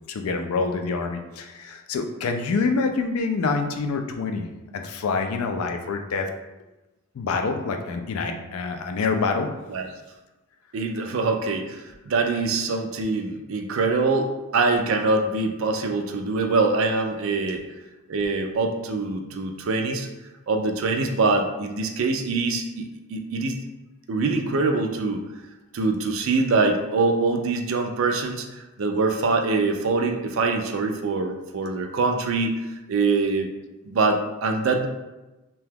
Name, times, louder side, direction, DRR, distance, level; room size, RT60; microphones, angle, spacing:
voice 1, 0.1-4.5 4.7-6.3 7.1-9.5, left 4 dB, 80° left, 5 dB, 0.4 m, -26 dB
voice 2, 10.7-17.6 18.1-20.1 20.5-23.6 24.1-25.3 25.7-32.6 32.9-33.5 33.9-34.9, right 3 dB, 65° right, 4 dB, 0.4 m, -24 dB
2.8 x 2.3 x 3.4 m, 1.1 s
head